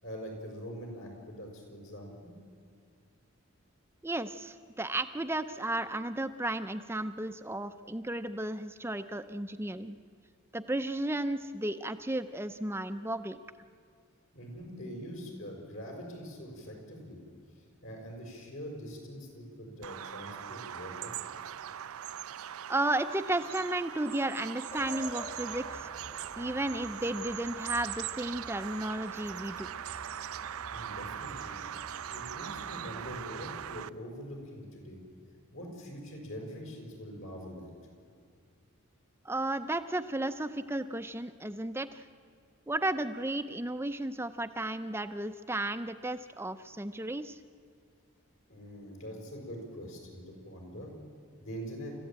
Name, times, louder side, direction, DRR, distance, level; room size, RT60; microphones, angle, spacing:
voice 1, 0.0-2.4 14.3-17.2 17.5-21.1 30.7-31.6 32.1-35.0 35.5-37.7 48.5-50.9 51.4-51.9, equal, 70° left, 1 dB, 5.9 m, -43 dB
voice 2, 4.0-10.0 10.5-13.4 22.7-25.9 26.4-29.7 39.2-42.1 42.7-47.4, right 1 dB, 10° right, 10 dB, 0.5 m, -34 dB
Bird vocalization bird call bird song, 19.8-33.9, right 10 dB, 80° right, 0.5 m, -41 dB
sound 1, 24.7-33.8, left 2 dB, 30° left, 1.7 m, -50 dB
29.0 x 14.5 x 8.8 m, 2.1 s
head